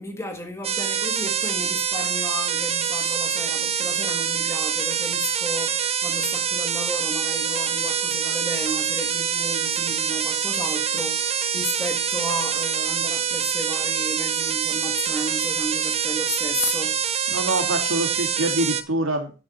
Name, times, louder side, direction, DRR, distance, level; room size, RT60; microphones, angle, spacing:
voice 1, 0.0-17.0, equal, 15° left, 1.8 m, -33 dB
sound 1, 0.6-18.8, right 8 dB, 30° right, 0.8 m, -25 dB
voice 2, 17.3-19.3, right 1 dB, 75° right, 2.3 m, -25 dB
10.0 x 7.8 x 4.3 m
head